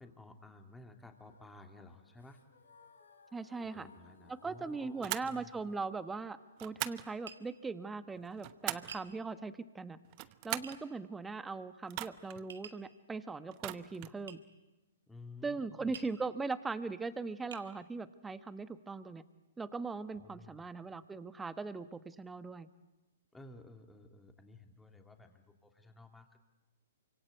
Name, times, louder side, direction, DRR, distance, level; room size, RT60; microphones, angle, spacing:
voice 1, 0.0-2.4 3.6-5.8 15.1-15.9 20.1-20.7 23.3-26.4, left 2 dB, 5° left, 5 dB, 2.8 m, -54 dB
sound 1, 1.2-9.1, left 4 dB, 75° left, 3.2 m, -65 dB
voice 2, 3.3-3.9 4.3-10.0 10.4-14.4 15.4-19.2 19.6-22.7, right 4 dB, 10° right, 12 dB, 1.2 m, -40 dB
sound 2, 5.0-5.3 6.6-7.1 8.1-9.0 10.0-10.8 11.9-12.4 13.5-14.2, right 19 dB, 40° right, 1.0 m, -40 dB
Tap, 7.3-7.5 8.9-9.1 10.6-10.8 12.5-12.9 14.3-14.4 15.9-16.2 16.9-17.0 17.5-17.7, right 6 dB, 70° right, 2.0 m, -49 dB
28.0 x 25.5 x 8.2 m, 1.1 s
hypercardioid pair, 120°, 0 cm